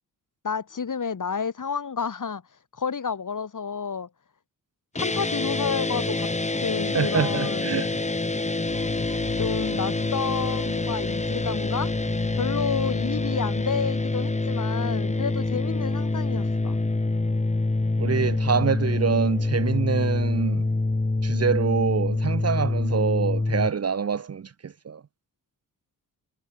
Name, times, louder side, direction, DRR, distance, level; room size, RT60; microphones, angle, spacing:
voice 1, 0.4-2.4 2.8-4.1 4.9-7.9 9.4-11.9 12.3-16.8, left 6 dB, 55° left, 2.5 m, -30 dB
sound 1, 5.0-23.7, left 2 dB, 20° left, 1.5 m, -26 dB
voice 2, 6.9-8.0 18.0-20.7 21.2-25.0, right 6 dB, 40° right, 0.8 m, -26 dB
sound 2, 8.7-17.0 17.3-17.4, left 9 dB, 80° left, 4.1 m, -42 dB
supercardioid pair, 45°, 38 cm